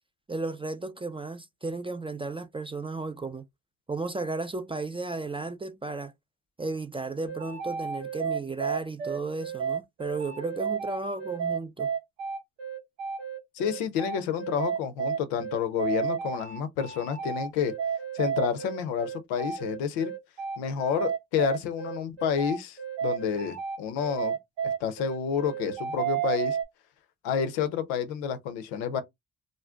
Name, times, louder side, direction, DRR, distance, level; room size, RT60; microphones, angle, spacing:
voice 1, 0.3-3.4 3.9-6.1 6.6-11.9, right 3 dB, 15° right, 0.3 m, -34 dB
sound 1, 7.3-26.6, right 7 dB, 80° right, 0.8 m, -32 dB
voice 2, 13.5-17.7 18.1-20.1 20.6-24.3 24.6-26.6 27.2-29.0, left 7 dB, 85° left, 0.6 m, -29 dB
2.5 x 2.1 x 3.4 m
hypercardioid pair, 45°, 41 cm